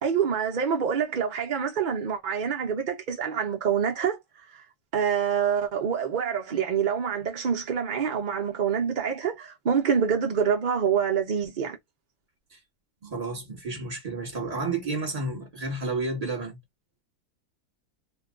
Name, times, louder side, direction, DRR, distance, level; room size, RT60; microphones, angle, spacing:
voice 1, 0.0-4.2 4.5-4.6 4.9-11.8, right 7 dB, 70° right, 0.4 m, -26 dB
voice 2, 13.0-16.6, right 3 dB, 25° right, 1.3 m, -31 dB
2.6 x 2.2 x 3.6 m
omnidirectional pair, 1.6 m